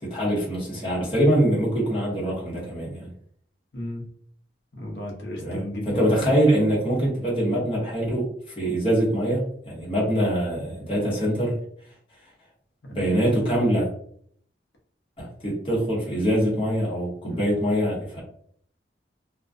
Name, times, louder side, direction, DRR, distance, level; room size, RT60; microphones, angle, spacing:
voice 1, 0.0-3.1 5.4-8.3 8.6-11.6 12.9-13.9 15.2-18.2, right 1 dB, 30° left, -6 dB, 0.9 m, -24 dB
voice 2, 4.8-6.0 17.3-17.4, left 1 dB, 85° left, -2 dB, 0.7 m, -34 dB
2.3 x 2.1 x 2.5 m, 0.62 s
head